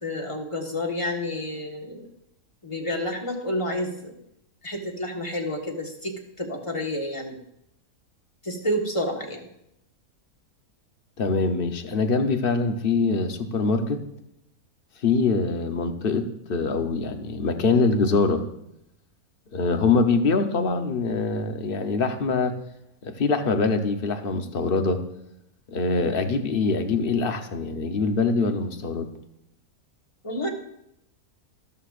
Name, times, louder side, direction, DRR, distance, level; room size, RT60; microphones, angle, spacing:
voice 1, 0.0-2.1 2.6-4.1 4.6-7.3 8.4-9.5 30.2-30.5, left 1 dB, 20° left, 1 dB, 1.4 m, -29 dB
voice 2, 11.2-14.0 15.0-18.4 19.5-22.5 23.0-25.0 25.7-29.1, left 4 dB, 45° left, 7 dB, 0.9 m, -24 dB
13.0 x 13.0 x 2.5 m, 0.79 s
omnidirectional pair, 1.6 m